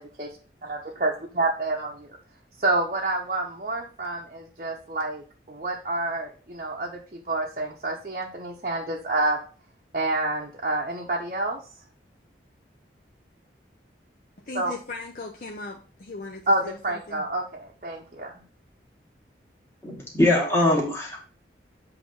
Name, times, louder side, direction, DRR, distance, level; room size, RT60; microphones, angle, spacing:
voice 1, 0.0-0.3 0.6-2.1 2.6-9.4 9.9-11.6 14.5-14.7 16.5-18.4, right 2 dB, 45° right, -3 dB, 0.8 m, -28 dB
voice 2, 14.5-17.2, left 3 dB, 50° left, 0 dB, 0.7 m, -38 dB
voice 3, 19.8-21.2, left 1 dB, 15° left, -3 dB, 1.8 m, -22 dB
7.5 x 2.9 x 5.3 m, 0.38 s
head